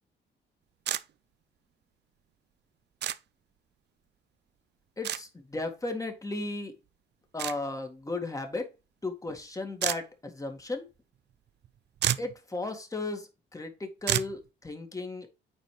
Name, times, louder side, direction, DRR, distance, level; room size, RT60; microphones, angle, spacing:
sound 1, 0.9-1.0 3.0-3.2 5.0-5.2 7.4-7.6 9.8-10.0 11.6-11.7 12.0-12.3 14.1-14.3, right 11 dB, 60° right, 0.5 m, -29 dB
voice 1, 5.0-6.7 7.3-8.7 9.0-10.9 12.2-15.3, left 2 dB, 15° left, 1.9 m, -35 dB
9.0 x 4.3 x 3.2 m
cardioid pair, 90°, 20 cm